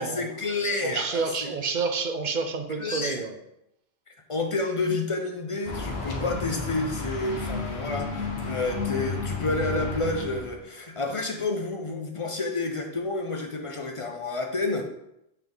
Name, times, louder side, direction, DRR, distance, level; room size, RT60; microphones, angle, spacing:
voice 1, 0.0-1.5 2.8-3.2 4.3-14.8, left 2 dB, 35° left, 3 dB, 0.6 m, -30 dB
voice 2, 0.8-3.4, right 4 dB, 50° right, 6 dB, 0.7 m, -29 dB
sound 1, 5.7-10.6, left 4 dB, 70° left, 1.3 m, -32 dB
7.3 x 3.5 x 3.9 m, 0.82 s
omnidirectional pair, 1.1 m